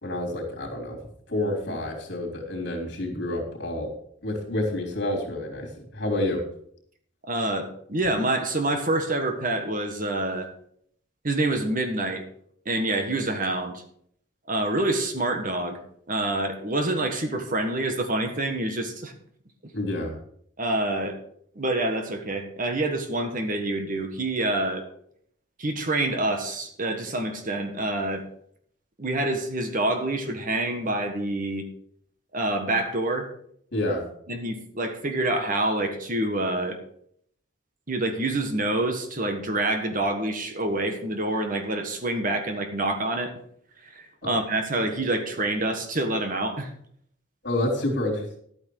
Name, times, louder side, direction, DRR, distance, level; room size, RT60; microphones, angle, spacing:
voice 1, 0.0-1.0 1.3-3.9 4.2-6.4 19.7-20.2 33.7-34.0 44.2-44.3 47.4-48.4, left 1 dB, 55° left, 0 dB, 3.5 m, -28 dB
voice 2, 7.3-10.5 11.2-12.2 12.6-13.8 14.5-15.8 16.1-19.1 20.6-21.2 21.5-24.8 25.6-28.2 29.0-31.6 32.3-33.3 34.3-36.8 37.9-43.3 43.9-46.7, right 2 dB, 40° right, 6 dB, 1.5 m, -27 dB
12.0 x 8.8 x 4.8 m, 0.66 s
head